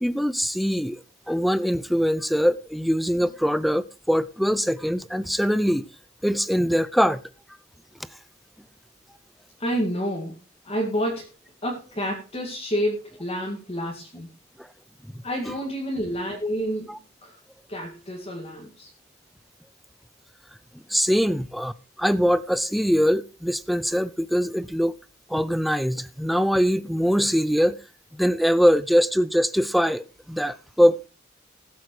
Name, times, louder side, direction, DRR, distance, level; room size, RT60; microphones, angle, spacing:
voice 1, 0.0-5.9 6.2-7.2 15.4-15.6 16.9-17.0 20.9-21.7 22.0-24.9 25.3-27.8 28.1-31.1, equal, ahead, 0.5 m, -22 dB
voice 2, 9.6-10.3 10.7-11.3 11.6-14.3 15.2-16.9 17.2-17.4 17.7-18.9, equal, 30° left, 2.2 m, -29 dB
19.0 x 7.8 x 3.2 m
head